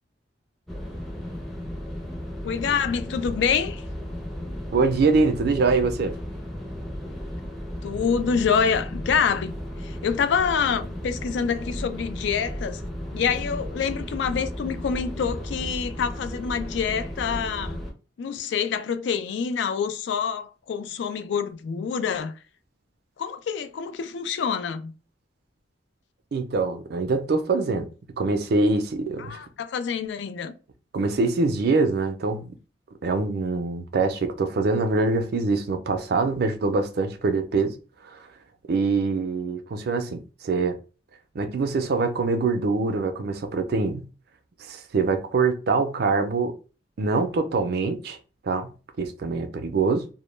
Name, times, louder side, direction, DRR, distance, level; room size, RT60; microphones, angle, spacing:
sound 1, 0.7-17.9, equal, ahead, 0.5 m, -34 dB
voice 1, 2.4-3.8 7.8-9.5 9.8-12.8 13.1-17.8 18.2-22.3 23.2-24.9 29.2-30.5, left 6 dB, 70° left, 0.3 m, -26 dB
voice 2, 4.7-6.1 26.3-27.9 28.2-29.4 30.9-32.5 33.0-37.8 38.0-38.2 38.7-40.8 41.3-44.1 44.6-46.6 47.0-48.2 48.4-50.1, right 3 dB, 60° right, 0.4 m, -24 dB
2.1 x 2.0 x 3.1 m
head